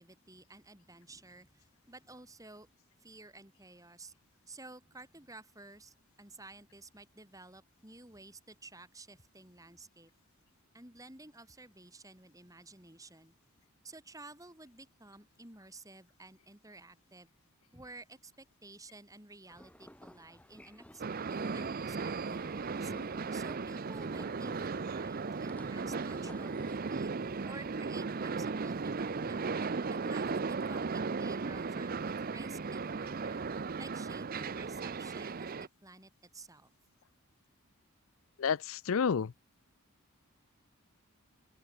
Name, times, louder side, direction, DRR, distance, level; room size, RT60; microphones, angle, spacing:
voice 1, 0.0-2.7 3.0-4.1 4.5-10.1 10.7-13.3 13.8-17.3 17.7-21.0 21.3-27.1 27.4-29.5 29.9-33.4 33.8-36.7, right 2 dB, 15° right, 7.7 m, -53 dB
sound 1, 19.5-26.7, equal, 5° left, 7.5 m, -55 dB
sound 2, 21.0-35.7, right 4 dB, 40° right, 0.6 m, -36 dB
voice 2, 38.4-39.3, left 6 dB, 65° left, 0.5 m, -30 dB
open air
head